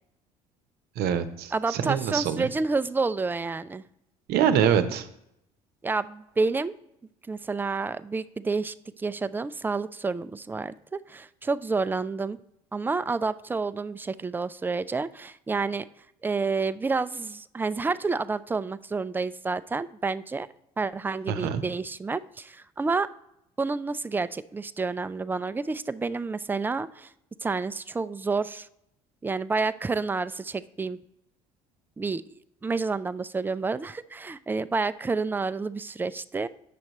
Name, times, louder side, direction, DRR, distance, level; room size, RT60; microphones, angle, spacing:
voice 1, 1.0-2.5 4.3-5.1 21.3-21.6, right 8 dB, 60° right, 10 dB, 0.8 m, -25 dB
voice 2, 1.5-3.8 5.8-6.7 7.3-12.4 12.7-15.9 16.2-20.5 20.8-23.1 23.6-27.1 27.4-28.7 29.2-31.0 32.0-36.5, right 4 dB, 10° right, 14 dB, 0.3 m, -29 dB
8.4 x 6.4 x 3.0 m, 0.80 s
hypercardioid pair, 65°, 18 cm